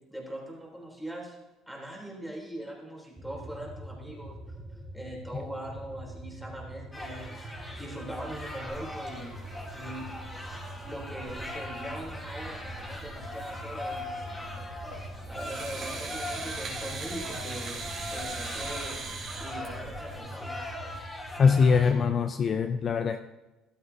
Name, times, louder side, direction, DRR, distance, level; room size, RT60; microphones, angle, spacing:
voice 1, 0.1-1.4 1.7-4.4 4.9-9.4 9.7-10.1 10.8-19.0 19.4-20.7, right 1 dB, ahead, -2 dB, 3.6 m, -41 dB
sound 1, 3.2-22.1, right 1 dB, 20° right, 2.4 m, -44 dB
sound 2, 6.9-21.9, left 1 dB, 15° left, 3.0 m, -41 dB
sound 3, 8.7-20.2, right 4 dB, 50° right, 3.8 m, -42 dB
voice 2, 21.4-23.2, left 5 dB, 40° left, 8 dB, 0.5 m, -23 dB
14.5 x 12.0 x 2.8 m, 1.1 s
cardioid pair, 110°, 0 cm